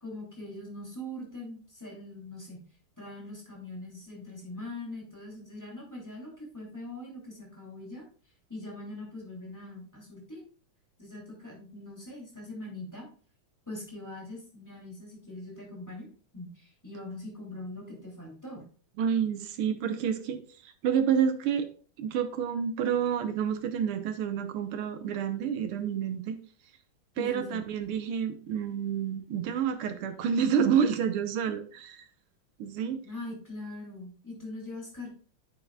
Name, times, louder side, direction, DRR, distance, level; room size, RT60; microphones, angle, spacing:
voice 1, 0.0-2.6 3.0-8.0 8.5-10.4 11.0-13.1 13.7-16.1 16.3-18.6 27.2-27.6 33.0-35.1, left 1 dB, 10° left, -2 dB, 2.8 m, -42 dB
voice 2, 19.0-21.7 22.0-26.4 27.2-32.0 32.6-33.0, right 8 dB, 85° right, 9 dB, 1.8 m, -29 dB
9.1 x 7.6 x 2.3 m, 0.41 s
omnidirectional pair, 2.4 m